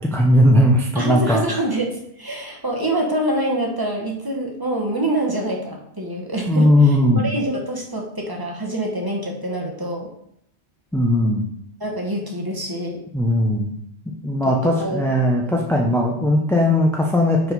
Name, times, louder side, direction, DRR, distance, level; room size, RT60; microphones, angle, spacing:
voice 1, 0.1-1.4 6.5-7.2 10.9-11.4 13.1-13.7 14.2-17.5, left 1 dB, 5° left, -1 dB, 0.4 m, -18 dB
voice 2, 0.9-10.1 11.8-13.0 14.4-15.0, right 1 dB, 20° right, 0 dB, 1.0 m, -25 dB
4.8 x 4.1 x 5.2 m, 0.70 s
omnidirectional pair, 1.2 m